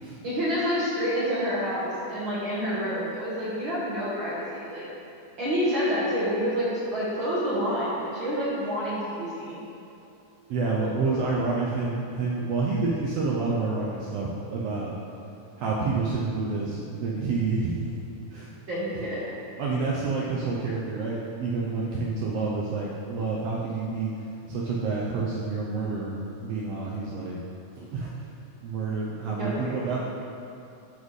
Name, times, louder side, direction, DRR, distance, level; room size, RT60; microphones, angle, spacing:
voice 1, 0.2-4.8 5.4-9.6 18.7-19.3 29.2-29.8, equal, 55° right, -10 dB, 1.4 m, -28 dB
voice 2, 10.5-14.9 15.6-17.9 18.3-18.5 19.6-24.1 24.5-27.4 27.8-28.1 28.6-30.0, right 3 dB, 85° right, -5 dB, 1.4 m, -28 dB
12.5 x 4.1 x 3.2 m, 2.7 s
omnidirectional pair, 3.6 m